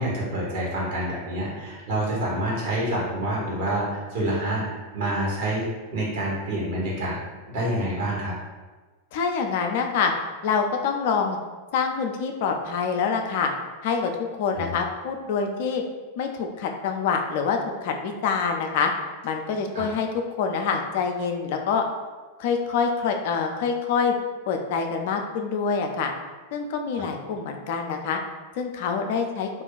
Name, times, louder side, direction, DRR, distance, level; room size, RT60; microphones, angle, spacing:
voice 1, 0.0-5.7 5.9-7.2 7.5-8.3 14.5-14.7 19.7-19.8, right 1 dB, 50° right, -5 dB, 1.1 m, -27 dB
voice 2, 9.1-10.1 10.4-11.4 11.7-13.5 13.8-14.1 14.4-15.8 16.2-18.9 19.2-20.1 20.4-21.8 22.4-24.1 24.5-26.1 26.5-28.2 28.6-29.5, left 6 dB, 50° left, 4 dB, 0.4 m, -26 dB
2.5 x 2.2 x 3.8 m, 1.3 s
figure-of-eight pair, 90°, 0 cm